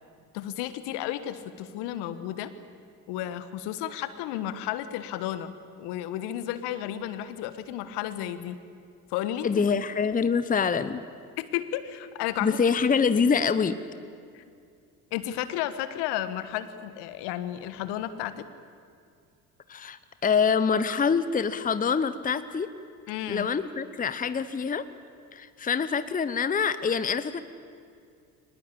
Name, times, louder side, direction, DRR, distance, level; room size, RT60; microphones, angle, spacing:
voice 1, 0.3-2.5 3.1-5.5 5.8-8.6 9.1-9.5 11.4-12.6 14.3-14.4 15.1-18.4 23.1-23.5, left 12 dB, 60° left, 13 dB, 1.5 m, -33 dB
voice 2, 9.4-11.0 12.4-13.8 19.7-22.7 23.3-24.9 25.3-27.4, left 6 dB, 20° left, 13 dB, 0.9 m, -25 dB
23.5 x 20.5 x 8.6 m, 2.3 s
figure-of-eight pair, 60°, 45 cm